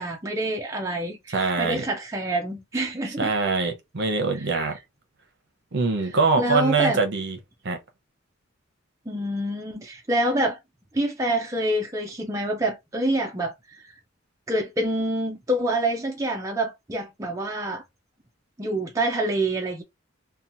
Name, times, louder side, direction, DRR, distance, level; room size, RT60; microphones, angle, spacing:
voice 1, 0.0-3.3 6.4-7.0 9.1-10.6 10.9-13.9 14.5-17.8 18.6-19.8, right 1 dB, 15° right, 0.5 m, -26 dB
voice 2, 1.3-1.8 3.2-4.8 5.7-7.4 7.6-7.8, right 4 dB, 55° right, 0.7 m, -23 dB
2.9 x 2.2 x 2.6 m
head